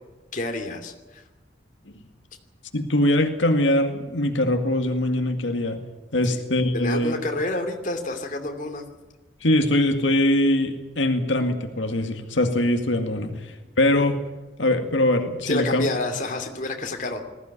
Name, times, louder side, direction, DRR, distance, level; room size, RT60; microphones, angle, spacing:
voice 1, 0.3-1.2 6.7-8.8 13.3-13.4 15.5-17.2, left 2 dB, 45° left, 4 dB, 2.7 m, -29 dB
voice 2, 2.7-5.8 6.1-7.1 9.4-14.2 14.6-15.9, left 1 dB, 85° left, 5 dB, 2.1 m, -22 dB
20.5 x 15.5 x 9.8 m, 1.2 s
head